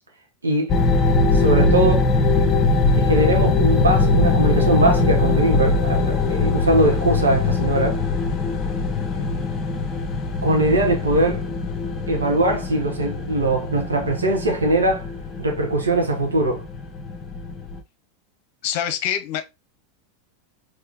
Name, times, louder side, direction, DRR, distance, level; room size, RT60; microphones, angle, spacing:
voice 1, 0.4-0.7 1.3-2.1 2.9-8.0 9.1-9.3 10.4-11.4 12.1-15.0 15.4-16.6, right 1 dB, 85° right, 1.3 m, -21 dB
sound 1, 0.7-17.8, left 3 dB, 30° left, 1.1 m, -21 dB
voice 2, 18.6-19.4, left 10 dB, 55° left, 0.9 m, -25 dB
4.4 x 3.3 x 3.5 m
figure-of-eight pair, 90°, 0 cm